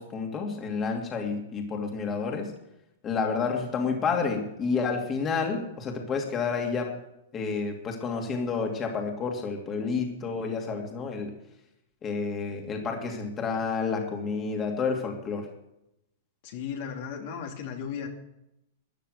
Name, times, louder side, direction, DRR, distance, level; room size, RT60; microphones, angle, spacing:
voice 1, 0.0-2.5 3.0-7.0 7.3-11.3 12.0-15.5, left 5 dB, 25° left, 2 dB, 2.6 m, -30 dB
voice 2, 16.4-18.1, left 7 dB, 60° left, 1 dB, 2.7 m, -35 dB
14.5 x 10.0 x 6.6 m, 0.83 s
hypercardioid pair, 125°, 0 cm